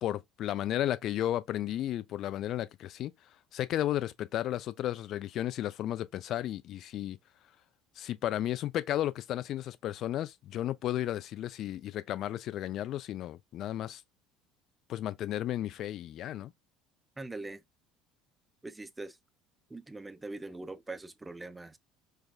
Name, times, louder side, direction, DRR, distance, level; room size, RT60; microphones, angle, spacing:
voice 1, 0.0-3.1 3.5-7.2 8.0-14.0 14.9-16.5, left 12 dB, 55° left, 0.4 m, -33 dB
voice 2, 17.2-17.6 18.6-19.2 19.7-21.8, right 2 dB, 15° right, 0.4 m, -42 dB
4.7 x 2.2 x 2.3 m
hypercardioid pair, 65°, 0 cm